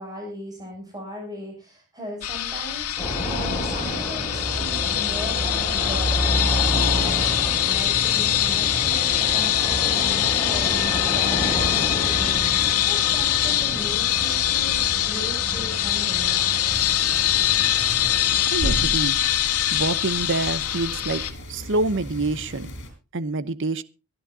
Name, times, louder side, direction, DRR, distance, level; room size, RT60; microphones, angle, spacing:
voice 1, 0.0-16.6, equal, 15° right, 7.3 m, -38 dB
sound 1, 2.2-21.3, left 12 dB, 90° left, 1.8 m, -23 dB
sound 2, 3.0-18.4, equal, 15° left, 7.0 m, -29 dB
sound 3, 16.7-22.9, left 1 dB, 55° left, 6.7 m, -40 dB
voice 2, 18.4-19.2 19.7-21.2 21.5-22.7 23.1-23.8, right 3 dB, 55° right, 0.8 m, -26 dB
23.5 x 12.0 x 2.8 m
head